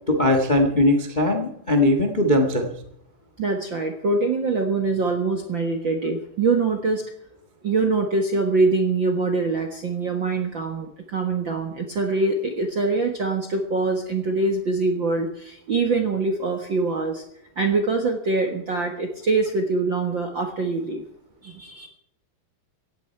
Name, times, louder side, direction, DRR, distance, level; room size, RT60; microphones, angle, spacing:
voice 1, 0.1-2.7, left 1 dB, 55° left, 5 dB, 0.5 m, -20 dB
voice 2, 3.4-7.0 7.6-17.2 17.6-21.0 21.4-21.9, right 3 dB, 60° right, 4 dB, 1.3 m, -24 dB
18.0 x 15.5 x 4.6 m, 0.73 s
omnidirectional pair, 4.3 m